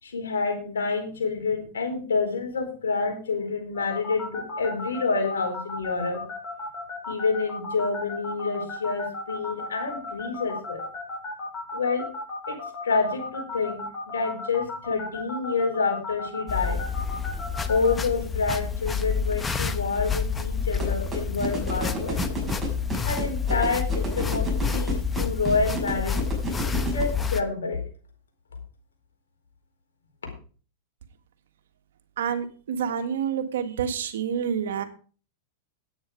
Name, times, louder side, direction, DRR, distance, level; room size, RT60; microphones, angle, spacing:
voice 1, 0.0-6.2 7.1-10.8 11.7-12.1 12.5-12.6 12.8-16.8 17.7-22.2 23.0-24.5 24.7-26.2 26.9-27.8, left 4 dB, 90° left, 2 dB, 4.5 m, -28 dB
sound 1, 3.7-17.9, left 3 dB, 30° left, 4.8 m, -35 dB
sound 2, 16.5-27.4, left 5 dB, 15° left, 1.0 m, -28 dB
sound 3, 20.8-27.0, right 3 dB, 10° right, 6.0 m, -30 dB
voice 2, 32.2-34.8, right 8 dB, 75° right, 9 dB, 1.6 m, -28 dB
10.5 x 8.9 x 5.2 m, 0.40 s
hypercardioid pair, 115°, 0 cm